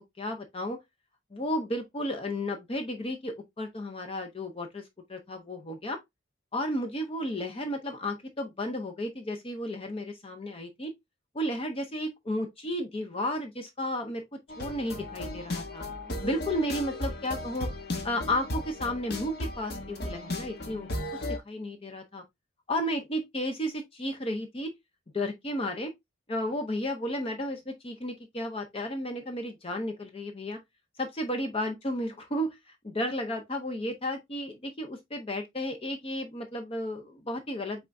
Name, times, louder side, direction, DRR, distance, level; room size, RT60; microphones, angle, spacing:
voice 1, 0.2-0.8 1.3-4.8 5.1-6.0 6.5-10.9 11.3-14.2 14.6-15.8 16.2-17.7 18.0-22.2 22.7-24.7 25.1-25.9 26.3-30.6 31.0-32.6 32.8-37.9, left 1 dB, 25° left, 0.6 m, -33 dB
sound 1, 14.5-21.4, left 1 dB, 50° left, 1.0 m, -36 dB
5.4 x 3.6 x 2.6 m
head